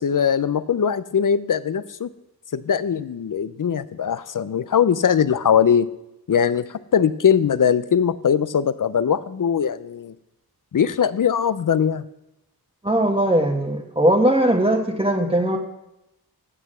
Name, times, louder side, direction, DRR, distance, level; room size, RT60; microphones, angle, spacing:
voice 1, 0.0-2.1 2.5-5.9 6.3-10.1 10.7-12.0, left 7 dB, 55° left, 15 dB, 0.5 m, -21 dB
voice 2, 12.8-15.6, right 1 dB, 15° right, 0 dB, 1.1 m, -19 dB
8.0 x 7.7 x 7.3 m, 0.91 s
wide cardioid pair, 75°, 38 cm